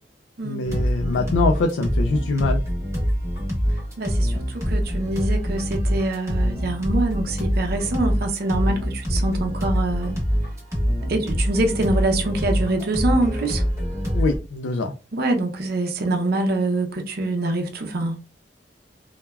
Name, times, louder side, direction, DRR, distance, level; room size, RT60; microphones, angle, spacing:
voice 1, 0.4-2.6 14.1-14.9, left 3 dB, 80° left, 0.3 m, -23 dB
sound 1, 0.6-14.4, equal, 15° right, 0.9 m, -24 dB
voice 2, 4.0-10.1 11.0-13.7 15.1-18.2, right 2 dB, 60° right, 0.5 m, -25 dB
3.1 x 2.2 x 2.2 m
head